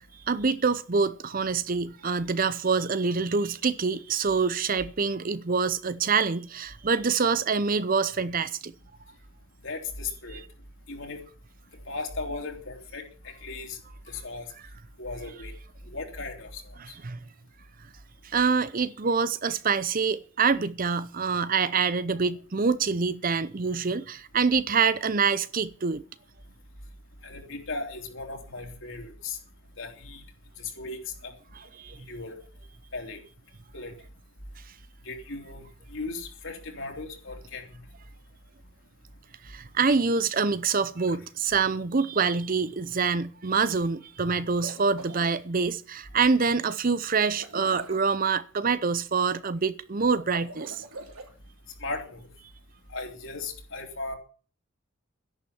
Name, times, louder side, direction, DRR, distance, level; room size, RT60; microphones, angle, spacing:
voice 1, 0.3-8.7 17.0-17.2 18.2-26.0 31.8-32.0 39.4-50.8, right 5 dB, 40° right, 0.6 m, -26 dB
voice 2, 9.6-10.4 10.9-11.2 11.9-13.8 14.1-14.5 15.0-15.5 15.9-16.6 27.2-29.4 29.8-30.2 30.6-31.3 32.1-32.4 32.9-33.2 33.7-33.9 35.0-35.6 35.9-37.8 41.1-41.2 51.8-52.3 52.9-54.2, left 3 dB, 60° left, 3.1 m, -37 dB
sound 1, 44.5-45.4 47.2-48.1 50.2-51.3, right 2 dB, 90° right, 3.1 m, -41 dB
12.5 x 10.5 x 7.1 m
head